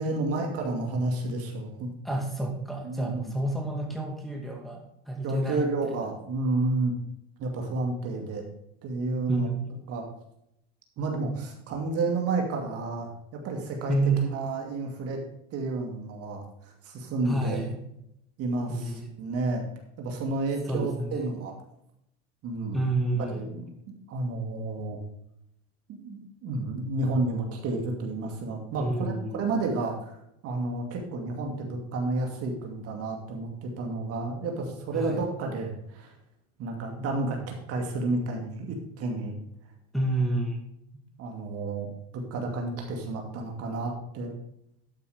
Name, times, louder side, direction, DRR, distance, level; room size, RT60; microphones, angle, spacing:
voice 1, 0.0-1.9 2.8-3.3 5.2-7.0 7.4-8.4 8.8-9.5 9.9-10.1 11.0-15.2 15.5-17.6 18.4-19.7 20.0-21.6 22.4-22.8 23.3-23.6 24.1-25.0 25.9-30.2 30.4-36.2 36.6-39.4 41.2-44.3, right 2 dB, 50° right, 2 dB, 2.5 m, -31 dB
voice 2, 2.0-5.9 9.3-9.5 13.9-14.2 17.3-17.8 18.7-19.1 20.7-21.3 22.7-23.5 28.8-29.5 34.9-35.2 39.9-40.6, right 2 dB, ahead, -1 dB, 2.4 m, -29 dB
12.5 x 5.6 x 5.0 m, 0.77 s
supercardioid pair, 115°, 31 cm